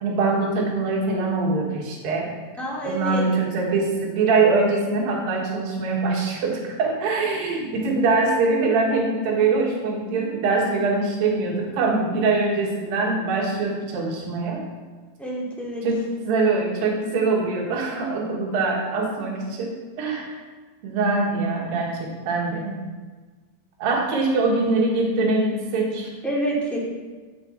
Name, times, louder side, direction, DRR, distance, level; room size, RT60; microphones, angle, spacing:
voice 1, 0.0-2.3 2.8-14.6 15.8-20.4 20.8-22.8 23.8-26.1, right 3 dB, 75° right, -1 dB, 3.3 m, -23 dB
voice 2, 2.6-3.2 15.2-15.9 26.2-26.8, right 1 dB, ahead, -5 dB, 0.5 m, -27 dB
15.5 x 5.3 x 4.5 m, 1.4 s
omnidirectional pair, 4.3 m